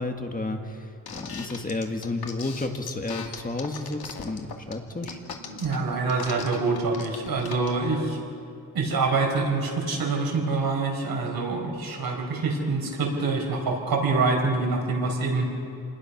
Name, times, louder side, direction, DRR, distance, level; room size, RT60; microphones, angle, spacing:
voice 1, 0.0-5.2, left 2 dB, 25° left, 4 dB, 1.6 m, -32 dB
sound 1, 1.1-7.7, left 6 dB, 85° left, 2.2 m, -38 dB
voice 2, 5.4-8.2 8.7-15.5, right 3 dB, 75° right, 1 dB, 4.7 m, -26 dB
29.0 x 20.0 x 5.9 m, 2.8 s
wide cardioid pair, 140°, 36 cm